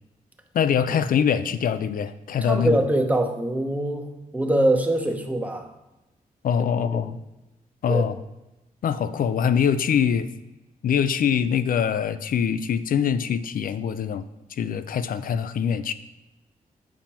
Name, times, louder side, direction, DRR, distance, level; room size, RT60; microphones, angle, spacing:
voice 1, 0.5-2.8 6.4-7.2 7.8-8.1 8.8-10.3 10.8-14.2 14.6-15.9, left 7 dB, 65° left, 13 dB, 0.4 m, -23 dB
voice 2, 2.4-5.7 6.8-7.0 7.9-8.1, right 1 dB, 10° right, 4 dB, 0.8 m, -24 dB
7.2 x 5.8 x 4.3 m, 1.0 s
wide cardioid pair, 125°, 15 cm